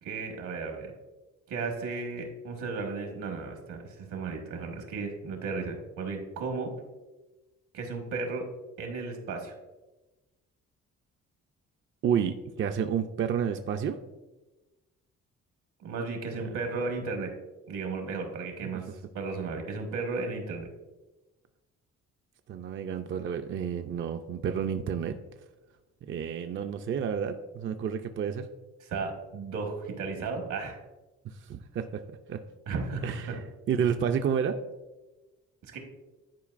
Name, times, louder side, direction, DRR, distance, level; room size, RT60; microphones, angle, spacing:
voice 1, 0.0-0.9 1.5-6.7 7.7-8.5 8.8-9.5 15.8-17.3 17.7-20.7 28.8-30.8 32.7-33.4 35.6-35.8, right 4 dB, 80° right, 3 dB, 1.5 m, -34 dB
voice 2, 12.0-14.0 16.4-16.6 22.5-25.2 26.1-28.5 31.5-32.0 32.3-32.4 33.0-33.4 33.7-34.6, right 7 dB, 40° right, 7 dB, 0.4 m, -30 dB
10.5 x 4.5 x 2.5 m, 1.1 s
cardioid pair, 90°, 30 cm